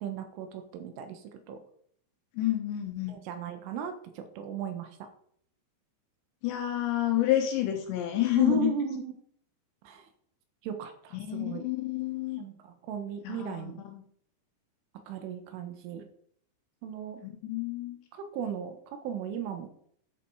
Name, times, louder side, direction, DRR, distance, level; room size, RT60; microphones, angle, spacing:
voice 1, 0.0-1.6 3.1-4.9 8.4-9.1 9.8-10.1 10.6-11.6 12.4-13.9 15.1-16.1 16.8-17.2 18.1-19.7, right 6 dB, 75° right, 8 dB, 3.7 m, -36 dB
voice 2, 2.4-3.2 6.4-8.7 11.1-12.4 13.2-14.0 17.2-18.0, left 14 dB, 70° left, 4 dB, 3.0 m, -29 dB
13.0 x 7.5 x 4.8 m, 0.62 s
omnidirectional pair, 5.9 m